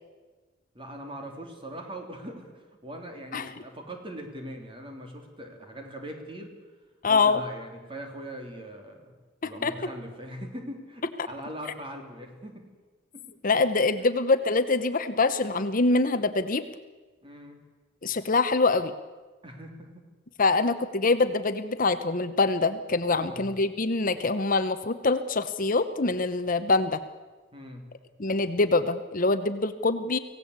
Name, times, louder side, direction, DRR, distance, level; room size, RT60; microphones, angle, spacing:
voice 1, 0.7-6.5 7.1-9.1 9.4-12.6 13.1-13.2 14.0-14.1 17.2-17.6 19.4-20.1 23.1-23.5 27.5-27.9, right 1 dB, 25° right, 3 dB, 3.4 m, -41 dB
voice 2, 7.0-7.4 9.4-9.7 11.2-11.3 13.4-16.6 18.0-18.9 20.4-27.0 28.2-30.2, left 3 dB, 45° left, 10 dB, 1.0 m, -24 dB
25.0 x 17.0 x 8.2 m, 1.3 s
head